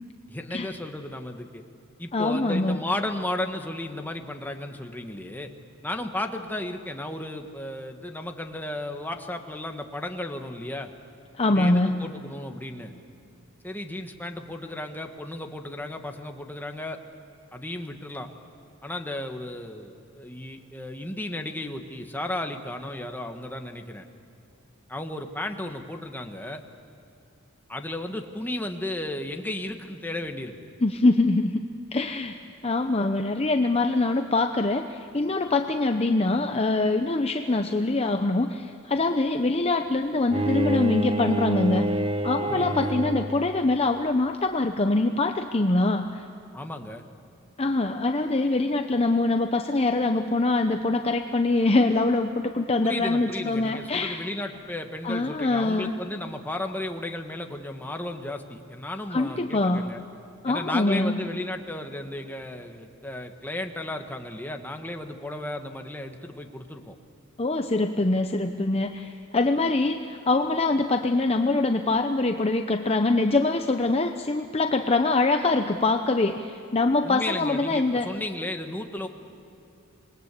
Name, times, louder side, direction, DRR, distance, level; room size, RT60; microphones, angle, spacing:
voice 1, 0.3-1.6 2.0-5.5 5.8-10.9 11.5-12.9 13.6-17.0 17.5-18.3 18.8-24.1 24.9-26.6 27.7-30.7 42.5-42.9 46.5-47.0 52.8-60.0 60.5-67.0 77.0-79.1, left 1 dB, 10° left, 4 dB, 1.4 m, -34 dB
voice 2, 2.1-2.8 11.3-11.9 30.8-31.6 31.9-41.9 42.2-46.2 47.6-54.2 55.0-55.9 59.1-59.8 60.4-61.2 67.4-78.1, left 2 dB, 30° left, 6 dB, 0.7 m, -24 dB
Bowed string instrument, 40.3-43.5, right 1 dB, 25° right, 0.8 m, -27 dB
27.5 x 21.0 x 8.3 m, 2.7 s
head